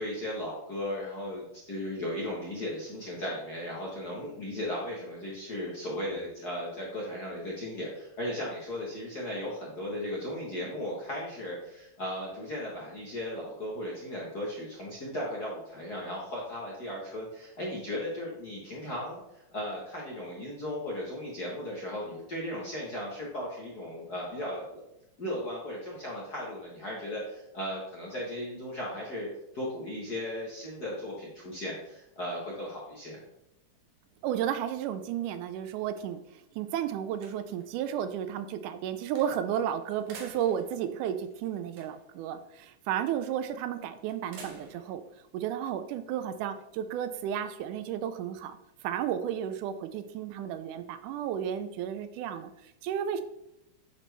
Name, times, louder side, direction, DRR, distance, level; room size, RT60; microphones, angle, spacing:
voice 1, 0.0-24.8 25.2-29.3 29.5-33.2, left 1 dB, 50° left, -5 dB, 1.3 m, -36 dB
sound 1, 34.1-35.6 36.1-36.2 36.6-37.8 39.2-39.6 39.9-42.2 43.3-43.6 44.1-45.0, right 4 dB, 65° right, 1.8 m, -51 dB
voice 2, 34.2-45.0 45.3-48.6 48.8-53.2, right 9 dB, 90° right, 10 dB, 2.1 m, -33 dB
9.2 x 4.2 x 3.4 m, 0.84 s
omnidirectional pair, 3.5 m